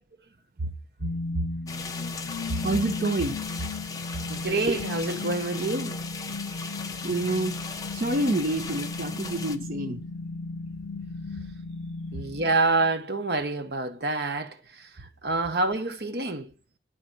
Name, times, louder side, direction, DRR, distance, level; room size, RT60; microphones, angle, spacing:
sound 1, 1.0-13.0, left 3 dB, 80° left, 0.4 m, -36 dB
sound 2, 1.7-9.6, left 4 dB, 20° left, 0.8 m, -38 dB
voice 1, 2.6-3.4 7.0-7.5 7.9-10.0, right 2 dB, 50° right, 0.7 m, -27 dB
voice 2, 4.3-6.0 12.1-14.6 15.2-16.5, right 3 dB, 70° right, 1.1 m, -27 dB
11.0 x 3.9 x 7.7 m
head